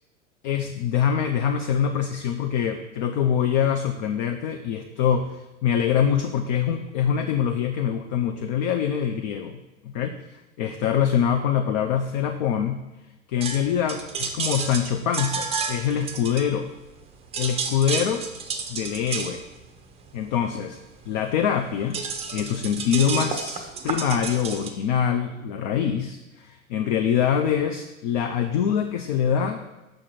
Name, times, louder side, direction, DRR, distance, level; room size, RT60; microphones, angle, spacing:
voice 1, 0.4-9.6 9.8-10.2 10.6-12.8 13.3-16.7 17.4-18.2 18.7-19.4 20.1-20.8 21.1-22.0 22.3-29.6, left 8 dB, 40° left, 6 dB, 0.4 m, -24 dB
sound 1, 13.4-17.0 17.2-24.7, right 5 dB, 15° right, 0.6 m, -31 dB
6.4 x 4.8 x 4.3 m, 1.1 s
figure-of-eight pair, 85°, 40 cm